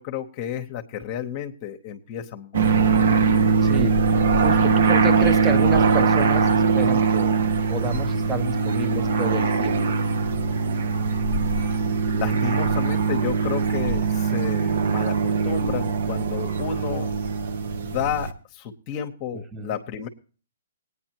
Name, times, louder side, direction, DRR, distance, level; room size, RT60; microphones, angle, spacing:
voice 1, 0.0-2.9 11.5-11.8 12.1-17.1 17.8-20.1, left 9 dB, 35° left, 4 dB, 1.0 m, -32 dB
sound 1, 2.5-18.3, right 5 dB, 65° right, 1.1 m, -21 dB
voice 2, 3.6-4.0 4.4-7.3 7.7-9.9 12.2-12.4 19.3-19.8, right 3 dB, 15° right, 9 dB, 1.0 m, -30 dB
19.0 x 9.7 x 2.9 m, 0.38 s
hypercardioid pair, 135°, 0 cm